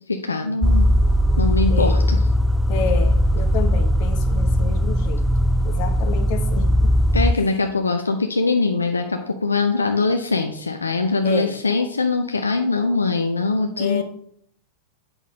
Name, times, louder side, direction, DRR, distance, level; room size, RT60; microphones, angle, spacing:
voice 1, 0.1-0.9 1.4-2.2 7.1-14.0, left 3 dB, 75° left, 5 dB, 0.6 m, -22 dB
sound 1, 0.6-7.3, equal, ahead, 0.3 m, -19 dB
voice 2, 1.7-2.1 2.7-5.3 5.6-6.9 7.4-7.5 11.2-11.6 13.8-14.0, left 6 dB, 45° left, 8 dB, 1.1 m, -29 dB
8.2 x 6.3 x 3.7 m, 0.65 s
figure-of-eight pair, 90°, 0 cm